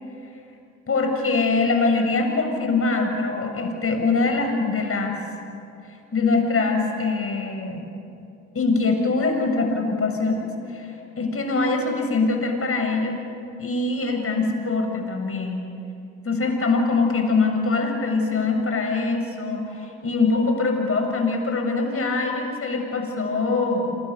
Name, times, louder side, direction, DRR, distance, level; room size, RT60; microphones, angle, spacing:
voice 1, 0.9-5.2 6.1-7.9 8.5-10.9 11.2-13.2 13.6-15.7 16.2-24.0, left 3 dB, 35° left, 3 dB, 7.3 m, -23 dB
28.5 x 27.0 x 7.0 m, 2.7 s
hypercardioid pair, 55°, 37 cm